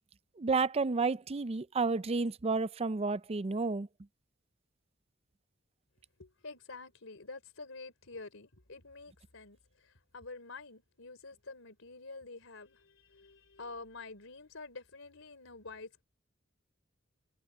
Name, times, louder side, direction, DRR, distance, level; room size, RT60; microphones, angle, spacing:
voice 1, 0.4-3.9, right 4 dB, 30° right, 0.5 m, -31 dB
voice 2, 6.2-16.0, left 3 dB, 85° left, 3.3 m, -48 dB
head